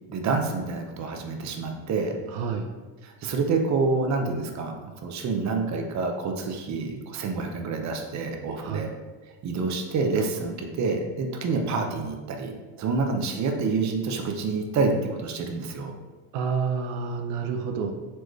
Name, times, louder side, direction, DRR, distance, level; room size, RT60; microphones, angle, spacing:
voice 1, 0.1-2.2 3.0-8.9 9.4-12.5 12.8-16.0, right 4 dB, 40° right, 3 dB, 0.7 m, -27 dB
voice 2, 2.3-2.7 8.6-8.9 16.3-17.9, right 5 dB, 90° right, 4 dB, 0.6 m, -29 dB
4.4 x 3.1 x 3.1 m, 1.3 s
cardioid pair, 105°, 43 cm